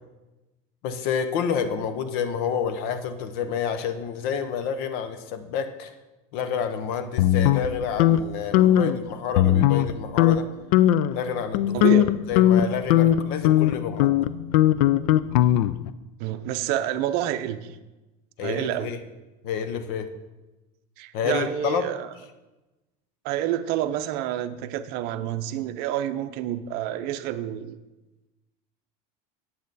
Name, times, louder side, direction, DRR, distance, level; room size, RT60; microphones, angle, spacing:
voice 1, 0.8-5.9 6.3-10.5 11.1-12.0 12.3-14.3 18.4-19.0 19.4-20.1 21.1-21.9, left 7 dB, 60° left, 9 dB, 0.9 m, -29 dB
sound 1, 7.2-8.2 8.5-9.0 9.4-9.9 10.2-10.4 10.7-11.2 11.5-15.9, left 12 dB, 80° left, 0.4 m, -19 dB
voice 2, 11.7-12.2 16.2-17.8 18.4-18.9 21.0-22.1 23.2-27.8, right 11 dB, 55° right, 10 dB, 0.6 m, -28 dB
8.5 x 7.8 x 4.1 m, 1.1 s
supercardioid pair, 145°, 19 cm